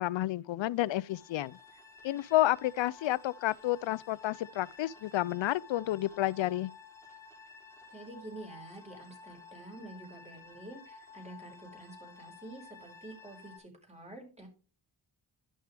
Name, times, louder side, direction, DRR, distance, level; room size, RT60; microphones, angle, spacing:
voice 1, 0.0-1.6 2.0-6.7, left 15 dB, 80° left, 0.6 m, -30 dB
sound 1, 0.8-13.6, left 5 dB, 5° left, 3.5 m, -53 dB
voice 2, 7.9-14.5, right 2 dB, 15° right, 4.8 m, -48 dB
11.0 x 6.4 x 3.4 m
cardioid pair, 80°, 45 cm